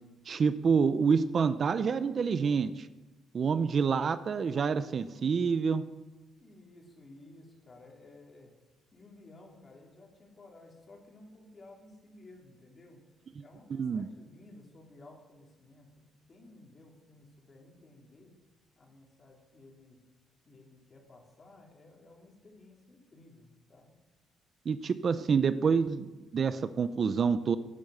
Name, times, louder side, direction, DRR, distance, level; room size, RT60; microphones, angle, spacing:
voice 1, 0.3-2.9 3.3-5.8 13.4-13.5 13.7-14.1 24.7-27.6, right 6 dB, 45° right, 13 dB, 0.6 m, -27 dB
voice 2, 6.4-8.5 8.9-13.0 13.4-18.3 18.8-20.0 20.5-23.9, left 2 dB, 30° left, 0 dB, 3.6 m, -55 dB
15.0 x 8.8 x 6.6 m, 1.1 s
cardioid pair, 115°, 0 cm